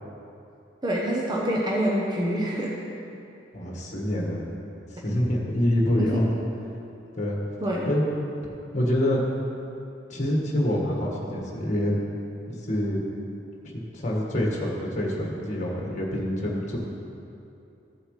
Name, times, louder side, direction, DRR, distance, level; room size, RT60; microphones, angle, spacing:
voice 1, 0.8-2.7 6.0-6.2 7.6-7.8, right 1 dB, 25° right, -4 dB, 0.9 m, -26 dB
voice 2, 3.5-4.4 5.0-6.3 7.2-7.4 7.9-8.0 8.7-9.2 10.1-11.9 12.5-13.0 13.7-16.8, left 1 dB, 40° left, -2 dB, 1.7 m, -26 dB
14.0 x 7.7 x 3.3 m, 2.7 s
head